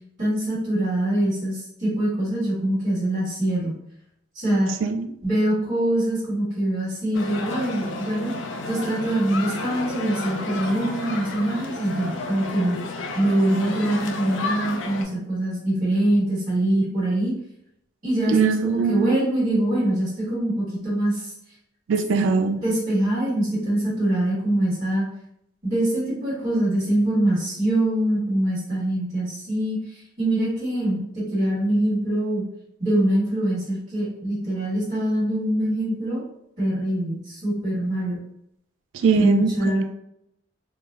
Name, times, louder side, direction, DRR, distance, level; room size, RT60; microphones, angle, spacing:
voice 1, 0.2-3.7 4.3-4.7 5.2-8.3 8.6-12.8 13.1-17.3 18.0-21.3 22.1-22.3 22.6-25.1 25.6-29.8 30.2-32.4 32.8-36.2 36.6-38.2 39.1-39.8, right 1 dB, 40° right, -9 dB, 1.4 m, -24 dB
sound 1, 7.1-15.0, left 3 dB, 80° left, 0.5 m, -32 dB
voice 2, 18.3-19.2 21.9-22.6 38.9-39.8, right 5 dB, 90° right, 7 dB, 0.3 m, -22 dB
3.2 x 2.0 x 3.5 m, 0.76 s
head